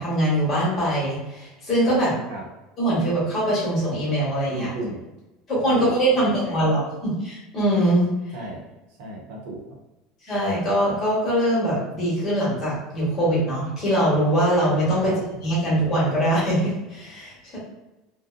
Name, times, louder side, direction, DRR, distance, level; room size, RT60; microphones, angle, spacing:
voice 1, 0.0-2.1 2.8-4.7 5.5-8.1 10.3-15.1 15.4-17.6, right 1 dB, 25° left, -7 dB, 1.0 m, -22 dB
voice 2, 4.5-5.0 5.7-6.6 8.3-8.6 9.0-9.8 15.0-15.2, right 1 dB, 75° right, -2 dB, 0.7 m, -35 dB
2.5 x 2.1 x 2.4 m, 1.0 s
cardioid pair, 165°, 0 cm